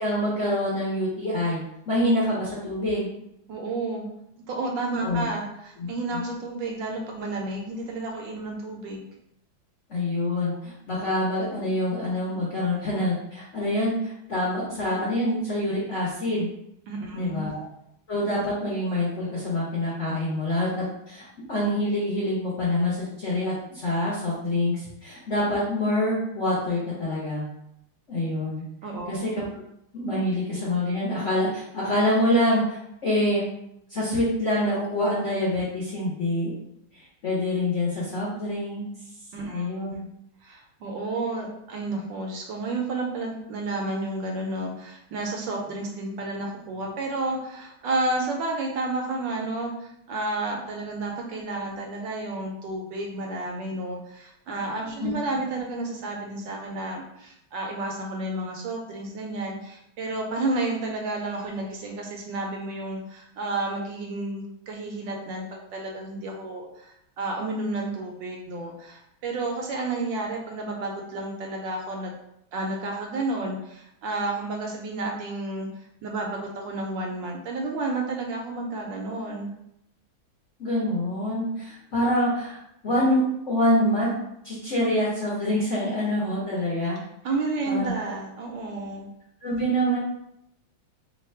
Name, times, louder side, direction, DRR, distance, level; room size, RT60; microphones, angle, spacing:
voice 1, 0.0-1.6 1.9-3.2 5.0-5.2 5.8-5.9 9.9-16.5 17.1-17.6 18.1-27.5 28.1-28.6 29.1-29.4 29.9-33.4 33.9-36.5 36.9-38.8 39.5-39.9 55.0-55.1 80.6-82.6 82.8-84.1 84.4-87.0 87.7-87.9 89.4-90.0, left 1 dB, 55° left, -6 dB, 0.8 m, -26 dB
voice 2, 3.5-4.1 4.4-9.0 16.9-17.5 28.8-29.2 39.3-40.0 40.4-72.1 72.5-75.7 76.0-79.5 87.2-89.1, right 2 dB, 75° right, 1 dB, 1.2 m, -31 dB
3.2 x 2.2 x 4.2 m, 0.79 s
omnidirectional pair, 2.2 m